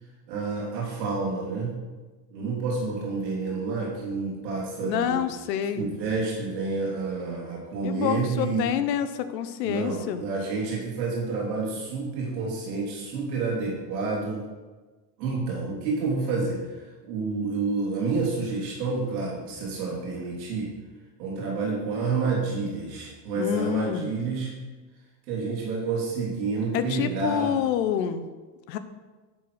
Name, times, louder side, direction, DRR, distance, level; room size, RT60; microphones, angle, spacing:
voice 1, 0.3-1.7 2.3-5.2 5.7-8.7 9.6-14.4 15.2-20.7 21.2-24.5 25.3-27.5, right 4 dB, 90° right, -4 dB, 3.2 m, -29 dB
voice 2, 4.8-5.9 7.8-10.2 23.4-24.1 26.7-28.2 28.7-28.8, left 9 dB, 85° left, 10 dB, 1.0 m, -27 dB
11.0 x 4.3 x 6.5 m, 1.3 s
supercardioid pair, 110°, 49 cm